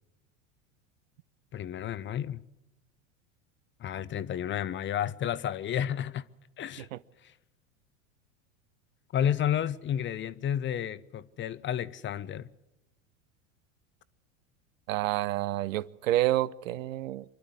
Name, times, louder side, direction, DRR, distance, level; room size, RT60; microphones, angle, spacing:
voice 1, 1.5-2.4 3.8-6.2 6.6-6.9 9.1-12.5, left 10 dB, 30° left, 0.7 m, -31 dB
voice 2, 14.9-17.2, right 15 dB, 75° right, 0.7 m, -28 dB
25.5 x 12.0 x 9.6 m
hypercardioid pair, 90°, 39 cm